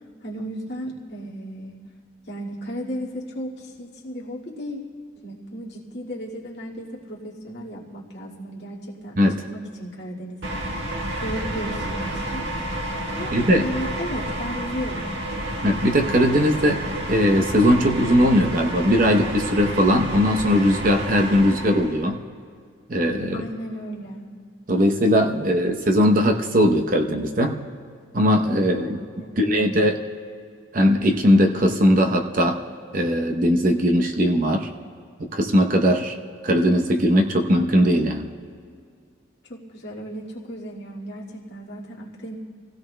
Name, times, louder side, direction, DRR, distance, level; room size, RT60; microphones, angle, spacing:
voice 1, 0.2-1.8 2.3-4.8 5.2-12.5 13.1-15.1 23.3-24.2 29.2-29.7 39.5-42.3, equal, 60° left, -4 dB, 2.0 m, -35 dB
sound 1, 10.4-22.0, right 1 dB, 70° right, 1.5 m, -30 dB
voice 2, 13.3-13.7 15.6-16.8 17.1-22.2 22.9-23.5 24.7-27.6 28.1-29.0 29.4-30.0 30.7-32.6 32.9-34.7 35.2-36.2 36.4-38.3, equal, 45° right, 4 dB, 0.8 m, -19 dB
27.0 x 16.5 x 2.2 m, 2.1 s
head